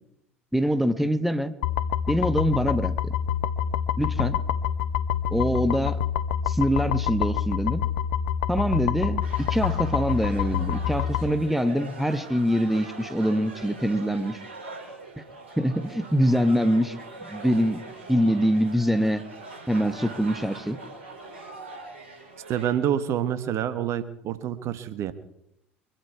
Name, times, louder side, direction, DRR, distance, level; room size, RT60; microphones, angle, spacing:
voice 1, 0.5-1.5 2.1-3.1 4.0-4.4 5.3-6.0 6.5-7.8 8.5-14.4 15.2-15.3 15.6-16.9 17.2-17.8 18.1-19.2 19.7-20.8, equal, ahead, 10 dB, 1.4 m, -24 dB
sound 1, 1.6-11.3, left 9 dB, 70° left, 0.8 m, -27 dB
sound 2, 9.2-22.7, right 2 dB, 80° right, 3.6 m, -42 dB
voice 2, 22.5-25.1, right 10 dB, 50° right, 12 dB, 1.2 m, -27 dB
23.5 x 12.0 x 4.7 m, 0.77 s
figure-of-eight pair, 65°, 6 cm